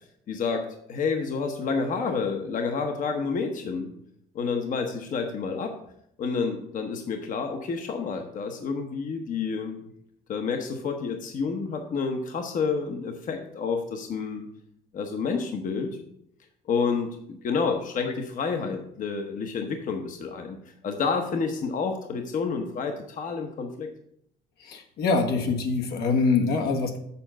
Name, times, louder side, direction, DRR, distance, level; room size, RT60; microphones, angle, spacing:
voice 1, 0.3-3.9 4.3-5.8 6.2-9.8 10.3-14.5 14.9-16.0 16.7-20.6 20.8-23.9, left 5 dB, 50° left, 5 dB, 1.0 m, -29 dB
voice 2, 24.6-27.0, left 4 dB, 70° left, 4 dB, 1.2 m, -25 dB
7.0 x 4.5 x 6.1 m, 0.73 s
cardioid pair, 110°, 17 cm